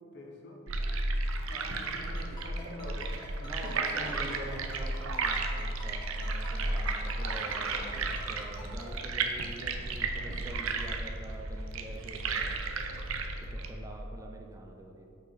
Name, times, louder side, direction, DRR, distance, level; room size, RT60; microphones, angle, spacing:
voice 1, 0.1-0.6 1.5-3.1 3.6-4.5 7.9-8.1 10.2-10.3, left 1 dB, 55° left, 0 dB, 1.1 m, -46 dB
sound 1, 0.7-13.7, right 3 dB, 75° right, 0.6 m, -33 dB
Ringtone, 2.2-8.9, equal, 20° left, 1.5 m, -48 dB
voice 2, 3.4-12.6 13.4-15.0, right 1 dB, 15° right, 2 dB, 0.4 m, -45 dB
6.2 x 5.4 x 4.9 m, 2.8 s
head